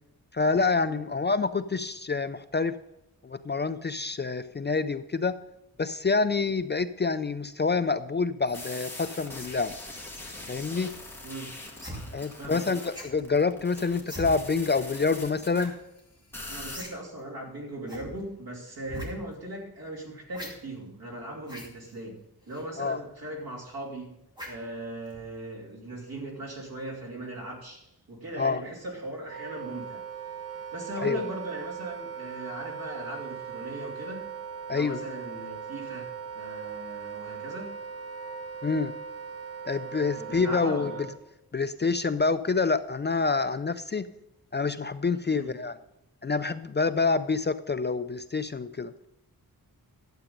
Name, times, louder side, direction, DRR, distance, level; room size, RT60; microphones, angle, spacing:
voice 1, 0.3-2.8 3.2-5.3 5.8-9.7 10.5-10.9 12.1-15.7 22.8-23.0 28.4-28.6 31.0-31.2 34.7-35.0 38.6-38.9 39.6-40.9 41.5-44.1 44.5-45.8 46.2-48.9, left 4 dB, 30° left, 11 dB, 0.4 m, -27 dB
sound 1, 8.5-15.7 16.3-16.8, left 2 dB, 5° left, 1.9 m, -42 dB
sound 2, 11.8-12.0 12.9-13.2 14.0-14.3 15.5-15.7 16.0-16.1 16.7-16.9 17.2-17.3 17.9-18.1 18.8-19.1 20.3-20.5 21.4-21.7 22.5-22.6 24.4-24.7 25.1-25.3, equal, 10° right, 2.5 m, -39 dB
voice 2, 16.5-22.2 22.5-24.2 24.5-30.0 30.7-34.3 34.7-36.1 36.3-37.7 40.1-41.0 45.3-45.6, right 1 dB, 75° right, -1 dB, 2.9 m, -39 dB
Wind instrument woodwind instrument, 29.2-41.2, right 7 dB, 40° right, 1.0 m, -39 dB
12.0 x 7.8 x 5.2 m, 0.84 s
wide cardioid pair, 170°, 37 cm